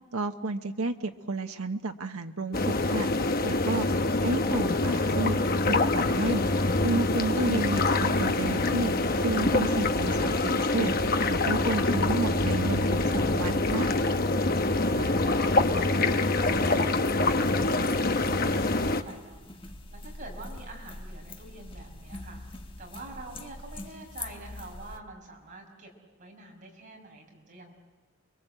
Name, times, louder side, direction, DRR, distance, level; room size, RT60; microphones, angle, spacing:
voice 1, 0.1-3.1 3.4-3.9 4.2-5.4 5.7-6.5 6.8-8.9 9.2-10.9 11.3-14.0, right 3 dB, 90° right, 5 dB, 1.0 m, -31 dB
sound 1, 2.5-19.0, left 2 dB, 45° left, 1.0 m, -25 dB
voice 2, 14.6-19.4 19.9-22.4 22.8-25.9 26.2-27.8, right 2 dB, 35° right, 1 dB, 5.6 m, -47 dB
sound 2, 16.0-25.0, left 2 dB, 25° left, 1.3 m, -45 dB
29.5 x 22.5 x 7.8 m, 1.3 s
head